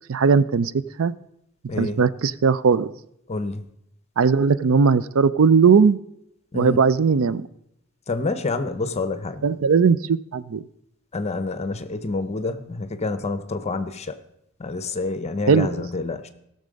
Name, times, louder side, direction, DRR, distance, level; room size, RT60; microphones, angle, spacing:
voice 1, 0.1-0.7 1.0-1.1 1.8-2.9 4.2-6.0 6.5-7.5 9.4-10.6 15.5-15.8, right 5 dB, 75° right, 0.5 m, -18 dB
voice 2, 1.7-2.0 3.3-3.6 6.5-6.8 8.1-9.4 11.1-14.2 14.6-16.3, left 3 dB, 30° left, 0.8 m, -28 dB
16.5 x 6.6 x 5.2 m
head